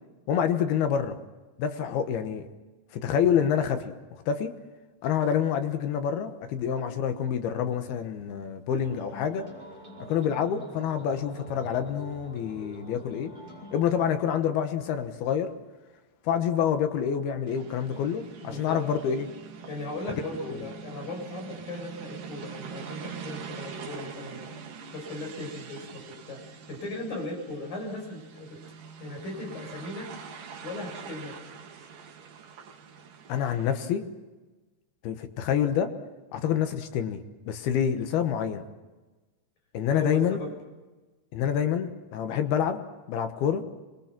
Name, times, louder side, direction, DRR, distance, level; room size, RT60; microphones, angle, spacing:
voice 1, 0.3-1.2 1.6-2.5 2.9-3.9 4.3-4.5 5.0-9.5 10.1-13.3 13.7-15.5 16.2-19.3 20.4-20.6 33.3-34.0 35.0-35.9 36.3-38.7 39.7-40.4 41.3-42.8 43.1-43.6, left 8 dB, 75° left, 8 dB, 3.2 m, -27 dB
sound 1, 8.8-13.8, right 1 dB, 20° right, 6.6 m, -45 dB
sound 2, 17.5-33.9, right 6 dB, 60° right, 3.4 m, -44 dB
voice 2, 18.4-18.8 19.7-24.5 24.9-28.6 29.0-30.1 30.6-31.4 39.9-40.5, left 2 dB, 55° left, 1 dB, 8.1 m, -37 dB
27.0 x 21.5 x 6.1 m, 1.2 s
omnidirectional pair, 4.6 m